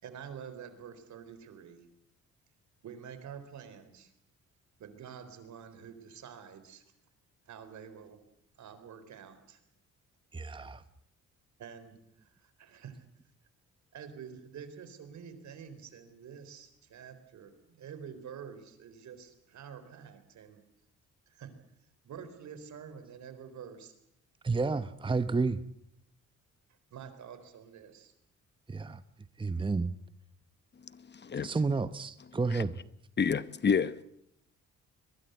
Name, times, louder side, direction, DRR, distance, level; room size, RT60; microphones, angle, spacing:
voice 1, 0.0-1.8 2.8-4.1 4.8-6.8 7.5-8.2 8.6-9.6 11.6-13.0 13.9-20.6 21.3-21.5 22.0-24.0 26.9-28.1, right 7 dB, 70° right, 4.0 m, -48 dB
voice 2, 10.3-10.8 24.4-25.6 28.7-29.0 29.4-29.9 31.4-32.7, right 4 dB, 15° right, 0.9 m, -30 dB
voice 3, 33.2-34.0, left 6 dB, 35° left, 0.9 m, -28 dB
22.5 x 21.0 x 8.0 m
cardioid pair, 90°, 30 cm